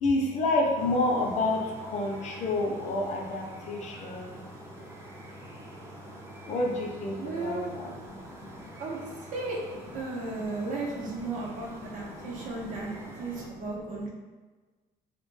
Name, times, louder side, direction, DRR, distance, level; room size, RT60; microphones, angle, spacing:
voice 1, 0.0-4.4 6.5-8.7 10.2-10.6 10.9-13.8, left 2 dB, 50° left, 0 dB, 0.4 m, -31 dB
sound 1, 0.7-13.5, right 1 dB, 15° right, 0.4 m, -46 dB
voice 2, 7.2-7.7 8.8-9.0 9.3-9.6 9.9-14.1, right 3 dB, 65° right, -2 dB, 0.6 m, -35 dB
2.1 x 2.1 x 3.1 m, 1.3 s
cardioid pair, 130°, 15 cm